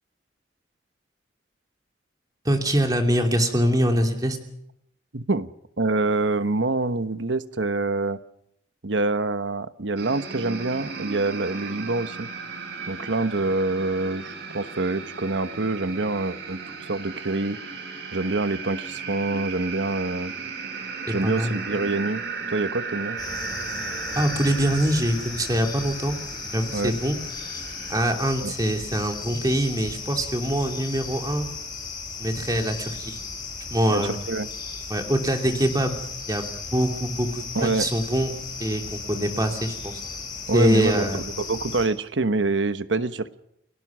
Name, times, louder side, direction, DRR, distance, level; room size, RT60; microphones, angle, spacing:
voice 1, 2.4-4.4 21.1-21.5 24.1-26.2 26.5-27.2 27.9-31.5 32.2-33.2 33.7-34.1 34.9-36.0 36.3-36.4 36.7-38.3 38.6-39.9 40.5-41.2, equal, 20° right, 4 dB, 2.7 m, -24 dB
voice 2, 5.1-5.5 5.8-8.2 8.8-12.3 12.9-17.6 18.1-20.3 21.1-22.2 22.5-23.2 26.7-26.9 28.4-28.5 33.9-34.5 37.5-37.8 40.5-43.4, right 3 dB, 80° right, 12 dB, 1.1 m, -26 dB
sound 1, 10.0-28.0, right 5 dB, 60° right, 3.6 m, -36 dB
sound 2, 23.2-41.9, left 5 dB, 20° left, 7.7 m, -36 dB
30.0 x 18.0 x 6.2 m, 0.75 s
head